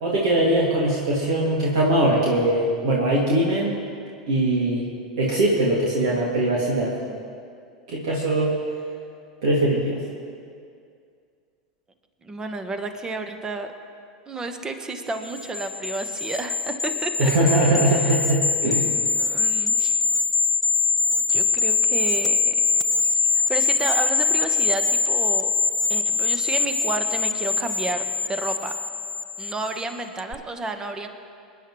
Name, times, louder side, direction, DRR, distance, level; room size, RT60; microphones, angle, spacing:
voice 1, 0.0-3.8 4.3-4.8 5.2-6.9 7.9-8.5 9.4-10.0 17.2-18.9, right 1 dB, 60° right, -5 dB, 2.5 m, -21 dB
voice 2, 12.2-13.7 14.3-17.3 18.0-18.4 19.2-20.0 21.3-22.6 23.0-25.5 25.9-28.7 29.4-31.1, right 3 dB, 20° right, 7 dB, 1.3 m, -31 dB
sound 1, 15.2-29.8 30.2-30.3, left 4 dB, 10° left, 0.4 m, -23 dB
27.5 x 10.5 x 3.2 m, 2.3 s
figure-of-eight pair, 85°, 4 cm